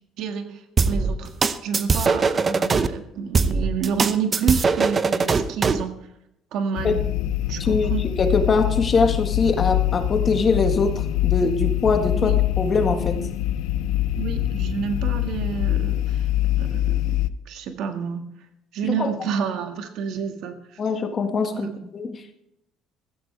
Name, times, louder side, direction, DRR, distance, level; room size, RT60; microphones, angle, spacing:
voice 1, 0.2-1.3 1.6-6.0 6.5-7.0 7.5-8.1 12.1-12.4 14.2-16.3 16.6-17.2 17.5-18.3 18.7-20.8 21.5-21.8, right 7 dB, 70° right, 6 dB, 1.9 m, -29 dB
sound 1, 0.8-2.9 3.3-5.9, right 4 dB, 30° right, 0.8 m, -21 dB
sound 2, 6.8-17.3, left 13 dB, 90° left, 0.7 m, -24 dB
voice 2, 7.6-13.2 18.8-19.1 20.8-22.4, left 4 dB, 30° left, 6 dB, 1.7 m, -23 dB
16.0 x 14.5 x 3.4 m, 0.79 s
cardioid pair, 140°, 0 cm